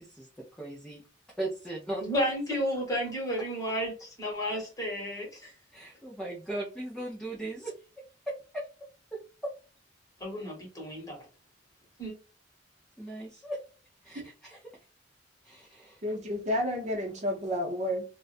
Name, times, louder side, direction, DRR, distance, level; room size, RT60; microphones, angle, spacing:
voice 1, 0.6-1.0 1.4-2.1 5.7-7.7 8.3-8.6 9.1-9.2 13.0-13.6 14.0-14.6 15.4-16.0, right 1 dB, 5° left, 0.6 m, -37 dB
voice 2, 2.0-5.5 10.2-11.2 12.0-12.1, equal, 20° left, 1.2 m, -32 dB
voice 3, 16.0-18.0, left 1 dB, 40° right, 0.7 m, -31 dB
2.4 x 2.1 x 2.4 m
head